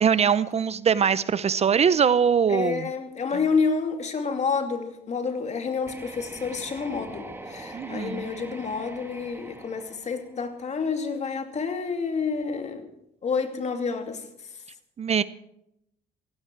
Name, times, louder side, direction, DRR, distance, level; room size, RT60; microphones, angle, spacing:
voice 1, 0.0-2.9 7.7-8.3 15.0-15.2, right 7 dB, 40° right, 16 dB, 0.7 m, -22 dB
voice 2, 2.5-12.9 13.2-14.2, left 5 dB, 40° left, 6 dB, 2.7 m, -29 dB
sound 1, 5.8-10.8, right 2 dB, 15° right, 2.9 m, -43 dB
17.0 x 16.0 x 4.7 m, 0.79 s
cardioid pair, 90°, 17 cm